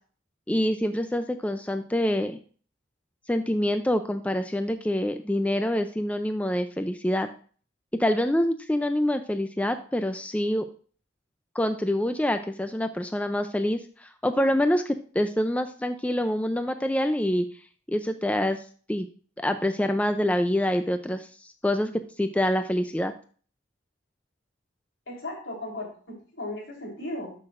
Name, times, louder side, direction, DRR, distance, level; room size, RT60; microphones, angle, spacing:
voice 1, 0.5-2.4 3.3-7.3 8.0-10.7 11.5-17.5 17.9-19.1 19.4-21.9 22.2-23.1, left 1 dB, 5° left, 8 dB, 0.3 m, -26 dB
voice 2, 25.1-27.3, left 1 dB, 80° left, -2 dB, 3.5 m, -36 dB
12.5 x 5.9 x 2.5 m, 0.42 s
head